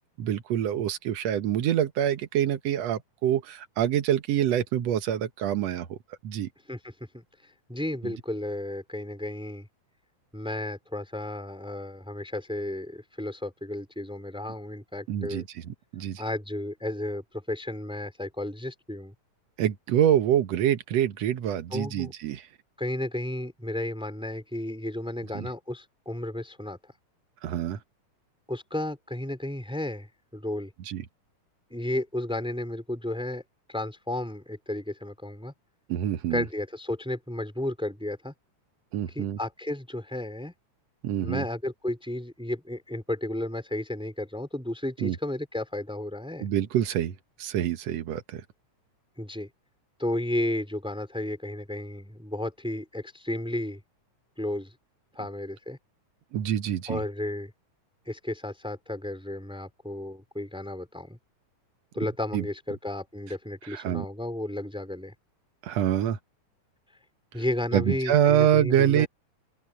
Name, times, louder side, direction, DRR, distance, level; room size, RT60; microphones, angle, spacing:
voice 1, 0.2-6.0 6.2-6.5 15.1-16.2 19.6-22.5 25.4-25.5 27.4-27.8 30.9-31.0 35.9-36.5 38.9-39.4 41.0-41.4 45.0-45.2 46.4-47.1 47.4-48.4 56.3-57.0 62.3-62.4 63.7-64.1 65.6-66.2 67.7-69.1, right 10 dB, 65° right, 2.1 m, -26 dB
voice 2, 6.7-9.7 10.3-15.4 16.2-19.1 21.7-22.1 22.8-26.8 28.5-30.7 31.7-33.4 33.7-35.5 36.3-38.3 39.1-40.5 41.2-46.5 49.2-49.5 50.0-53.8 54.4-54.7 55.1-55.8 56.9-57.5 58.0-61.2 61.9-65.1 67.3-69.1, left 1 dB, ahead, 3.4 m, -33 dB
open air
omnidirectional pair, 3.4 m